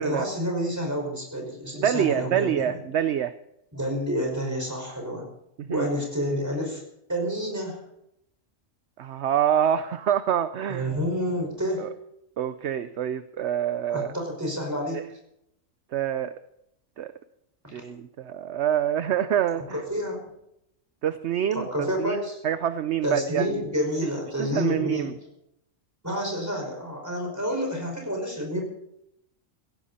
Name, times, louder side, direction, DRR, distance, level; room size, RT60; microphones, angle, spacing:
voice 1, 0.0-2.8 3.7-5.3 5.7-6.8 7.1-7.8 10.7-11.9 13.9-15.0 19.7-20.2 21.5-22.4 23.0-25.1 26.0-28.6, equal, 10° right, 1 dB, 5.4 m, -29 dB
voice 2, 1.8-3.3 5.6-5.9 9.0-10.9 11.8-11.9 12.4-14.1 14.9-15.0 15.9-16.3 17.0-17.1 17.7-19.8 21.0-23.6 24.4-25.1, right 10 dB, 65° right, 12 dB, 0.9 m, -26 dB
17.0 x 16.0 x 4.2 m, 0.78 s
omnidirectional pair, 1.4 m